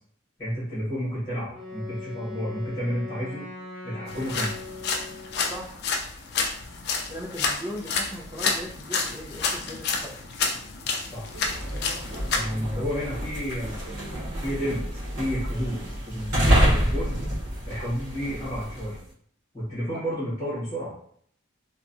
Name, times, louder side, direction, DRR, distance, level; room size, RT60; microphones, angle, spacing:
voice 1, 0.4-3.5 3.8-4.5 11.1-11.2 12.3-14.8 15.2-15.8 16.1-17.2 17.7-19.0 19.5-20.9, equal, 20° left, -9 dB, 1.3 m, -31 dB
Wind instrument woodwind instrument, 1.5-5.5, left 3 dB, ahead, 0.9 m, -40 dB
sound 1, 4.1-12.4, left 4 dB, 55° left, 0.4 m, -30 dB
voice 2, 5.5-5.8 7.1-10.2 12.1-12.2 12.8-12.9 19.9-20.0, equal, 20° right, -3 dB, 0.6 m, -38 dB
sound 2, 11.2-19.0, equal, 55° right, 1.0 m, -28 dB
3.0 x 2.3 x 2.5 m, 0.63 s
head